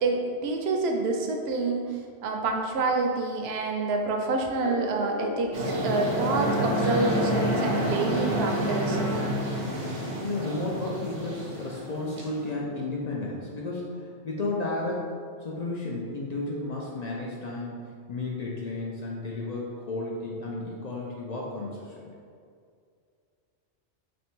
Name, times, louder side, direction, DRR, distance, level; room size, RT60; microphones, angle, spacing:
voice 1, 0.0-9.0, right 3 dB, 65° right, 2 dB, 0.7 m, -28 dB
sound 1, 4.6-9.2, equal, 55° left, 0.9 m, -39 dB
sound 2, 5.5-12.5, equal, 80° right, 1.1 m, -29 dB
Bowed string instrument, 6.3-10.4, right 1 dB, 5° right, 0.4 m, -41 dB
voice 2, 10.0-21.9, left 2 dB, 70° left, -4 dB, 0.3 m, -33 dB
3.2 x 2.6 x 4.4 m, 2.3 s
omnidirectional pair, 1.2 m